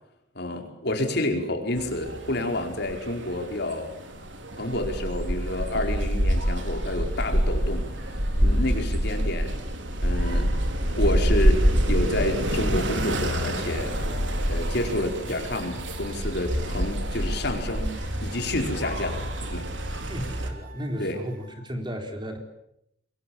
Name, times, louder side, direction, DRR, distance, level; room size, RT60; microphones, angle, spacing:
voice 1, 0.3-3.9 4.5-7.9 8.4-9.6 10.0-10.6 11.0-14.0 14.5-20.0 21.0-21.2, left 1 dB, 60° left, 4 dB, 4.7 m, -29 dB
sound 1, 1.8-20.5, equal, 75° right, 3.5 m, -27 dB
sound 2, 13.9-21.5, right 4 dB, 45° right, 7.0 m, -50 dB
voice 2, 20.0-22.4, equal, 25° right, 4 dB, 4.2 m, -34 dB
25.5 x 22.5 x 8.7 m, 0.77 s
head